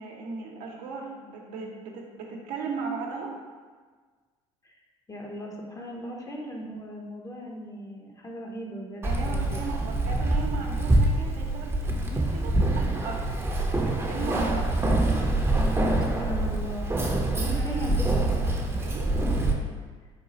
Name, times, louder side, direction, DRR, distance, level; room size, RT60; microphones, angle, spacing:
voice 1, 0.0-3.3 9.0-13.3 13.7-14.6 17.3-17.9 18.8-19.1, right 4 dB, 65° right, -1 dB, 0.8 m, -37 dB
voice 2, 5.1-9.6 14.2-14.6 16.0-18.1 19.4-19.7, equal, 20° left, 0 dB, 0.8 m, -38 dB
Keys jangling, 9.0-19.5, right 2 dB, 15° right, 0.7 m, -25 dB
4.3 x 2.3 x 4.0 m, 1.5 s
hypercardioid pair, 70°, 15 cm